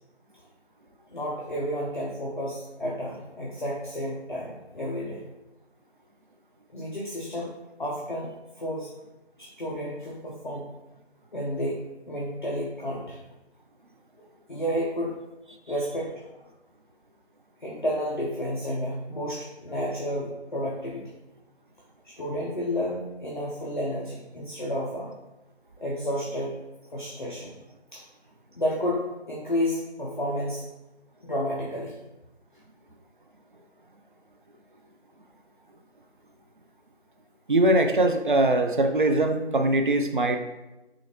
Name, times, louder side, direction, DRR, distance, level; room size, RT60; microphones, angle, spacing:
voice 1, 1.1-5.2 6.7-7.5 7.8-8.3 8.6-8.9 9.4-10.7 11.3-11.8 12.1-13.2 14.5-15.2 15.7-16.3 17.6-21.1 22.0-25.1 25.8-26.5 26.9-27.6 27.9-28.0 28.6-30.6 31.3-32.0, equal, 45° left, -4 dB, 0.7 m, -31 dB
voice 2, 37.5-40.4, right 1 dB, 50° right, 5 dB, 0.4 m, -22 dB
6.3 x 2.5 x 3.0 m, 1.0 s
figure-of-eight pair, 165°, 34 cm